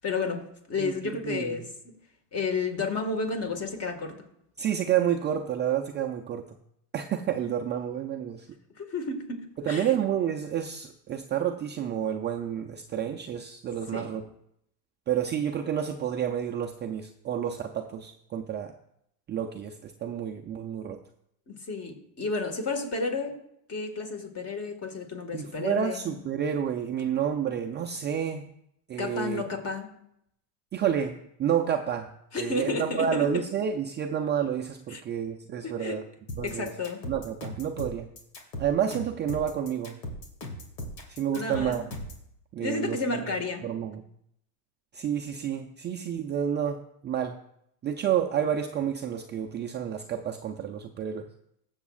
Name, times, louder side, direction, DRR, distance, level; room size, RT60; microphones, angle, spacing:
voice 1, 0.0-2.0 2.3-4.2 8.8-10.0 13.9-14.1 21.5-23.4 23.7-26.1 29.0-29.9 32.3-33.4 34.9-35.0 35.6-36.0 36.4-37.0 41.3-41.8 42.6-43.7, left 3 dB, 30° left, 1.8 m, -32 dB
voice 2, 0.8-1.7 4.6-6.6 6.9-8.5 9.6-14.2 15.1-18.7 19.3-21.0 25.3-28.5 28.9-29.4 30.7-32.1 32.4-36.0 36.4-36.7 37.1-38.1 38.6-40.0 41.1-41.8 42.5-44.1 44.9-47.4 47.8-51.3, right 9 dB, 25° right, 0.5 m, -30 dB
sound 1, 36.3-42.3, left 1 dB, 90° left, 2.4 m, -38 dB
20.5 x 7.2 x 2.4 m
supercardioid pair, 115°, 48 cm